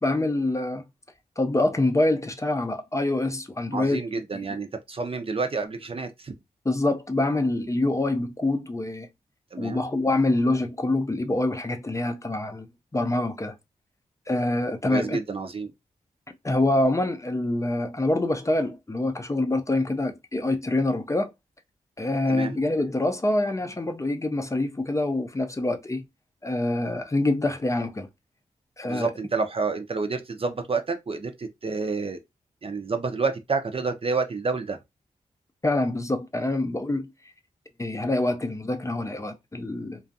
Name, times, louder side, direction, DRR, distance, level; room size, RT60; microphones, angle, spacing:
voice 1, 0.0-0.8 1.4-4.0 4.3-4.4 6.7-9.1 9.6-13.6 14.3-15.2 16.3-21.3 22.0-26.0 26.4-28.1 28.8-29.1 35.6-37.1 37.8-40.0, left 2 dB, 20° left, 0.5 m, -25 dB
voice 2, 3.7-6.3 9.5-9.9 14.9-15.7 22.3-22.6 28.8-32.2 32.6-34.8, right 4 dB, 40° right, 0.5 m, -29 dB
2.5 x 2.3 x 2.5 m
cardioid pair, 45°, 15 cm